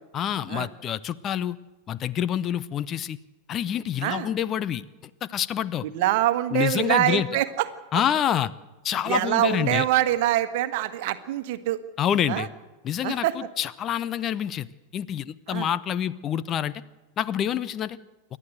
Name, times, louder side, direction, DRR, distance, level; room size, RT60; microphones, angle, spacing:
voice 1, 0.1-1.6 1.9-3.2 3.5-4.8 5.2-5.9 6.5-7.3 7.9-8.5 8.8-9.8 12.0-12.5 12.8-14.7 14.9-16.7 17.2-18.0, left 10 dB, 30° left, 16 dB, 0.6 m, -27 dB
voice 2, 5.8-7.7 9.0-11.8 12.3-12.5 13.0-13.5 15.5-15.7, right 14 dB, 50° right, 12 dB, 1.4 m, -24 dB
28.5 x 12.5 x 8.0 m, 1.2 s
figure-of-eight pair, 90°, 0 cm